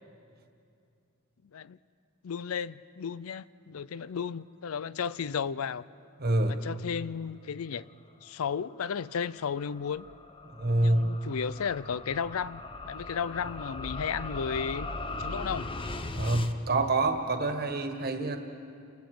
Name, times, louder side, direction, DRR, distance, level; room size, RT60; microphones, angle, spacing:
voice 1, 2.2-5.8 6.5-7.9 8.2-10.1 10.8-14.9 15.2-15.7, left 6 dB, 85° left, 18 dB, 0.5 m, -34 dB
voice 2, 6.2-6.5 10.6-11.0 16.1-18.4, right 2 dB, 50° right, 5 dB, 1.6 m, -26 dB
sound 1, 8.7-16.5, left 2 dB, 25° left, 0.8 m, -39 dB
30.0 x 19.0 x 5.0 m, 2.4 s
head